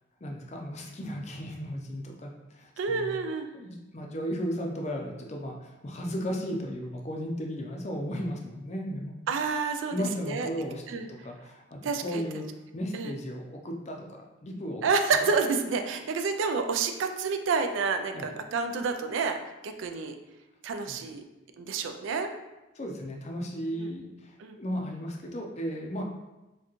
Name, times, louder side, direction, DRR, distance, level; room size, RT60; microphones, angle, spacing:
voice 1, 0.2-3.1 3.5-9.1 9.9-10.8 11.1-12.5 12.7-14.8 18.1-18.3 20.9-21.0 22.8-26.0, equal, 35° left, 1 dB, 0.5 m, -35 dB
voice 2, 2.8-3.5 9.3-10.0 10.2-10.5 10.9-11.1 11.8-12.2 12.9-13.1 14.8-20.2 20.6-21.2 21.5-22.3 23.7-23.9 24.4-24.6, right 4 dB, 75° right, 7 dB, 0.4 m, -29 dB
4.6 x 2.2 x 3.0 m, 1.0 s
head